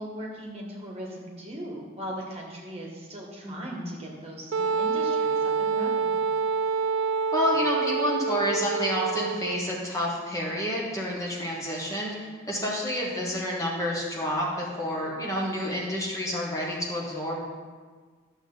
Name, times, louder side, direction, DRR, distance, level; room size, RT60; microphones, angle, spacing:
voice 1, 0.0-6.2, equal, 30° right, -2 dB, 1.8 m, -38 dB
voice 2, 3.4-3.9 7.3-17.5, equal, 15° left, -4 dB, 1.4 m, -29 dB
Wind instrument woodwind instrument, 4.5-9.7, right 5 dB, 70° right, 0.3 m, -27 dB
12.5 x 7.0 x 4.0 m, 1.5 s
head